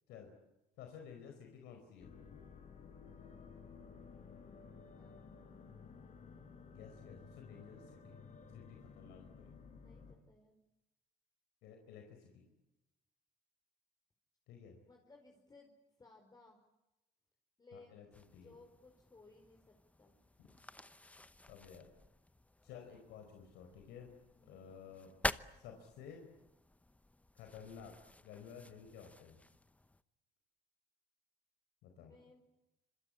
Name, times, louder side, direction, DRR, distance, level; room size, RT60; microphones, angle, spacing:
voice 1, 0.8-2.1 6.7-8.2 8.5-9.6 11.6-12.4 14.5-14.8 17.7-18.5 20.4-20.5 21.5-21.9 22.6-24.1 24.4-25.1 25.5-26.2 27.3-27.9 28.2-29.4 31.8-32.1, left 7 dB, 90° left, 4 dB, 4.7 m, -53 dB
sound 1, 2.0-10.1, left 5 dB, 45° left, 5.8 m, -55 dB
voice 2, 5.0-5.3 9.5-10.6 14.8-15.7 16.0-16.6 17.6-20.2 24.4-24.7 32.0-32.4, left 3 dB, 25° left, 2 dB, 4.7 m, -62 dB
sound 2, 18.1-30.0, left 2 dB, 10° left, 0.9 m, -48 dB
26.5 x 25.0 x 8.7 m, 0.97 s
cardioid pair, 110°, 17 cm